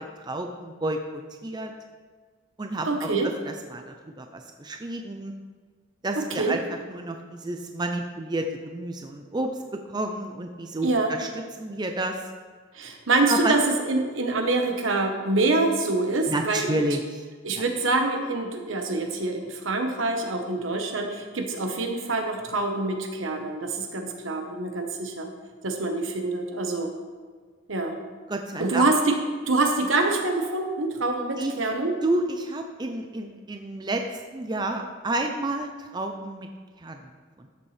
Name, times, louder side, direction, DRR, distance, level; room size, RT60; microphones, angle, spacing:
voice 1, 0.0-1.7 2.6-3.1 3.5-5.3 6.0-6.6 6.9-11.3 11.6-12.2 13.3-13.5 16.3-17.3 28.3-28.9 31.4-31.5 32.0-34.0 34.3-36.5 36.8-37.1 37.4-37.5, right 1 dB, 20° right, 4 dB, 0.5 m, -30 dB
voice 2, 2.9-3.3 6.2-6.6 10.8-11.1 12.7-16.7 17.4-25.3 25.6-26.9 27.7-28.0 28.6-29.2 29.5-31.9, right 2 dB, 75° right, 4 dB, 1.2 m, -25 dB
13.0 x 7.0 x 3.3 m, 1.5 s
head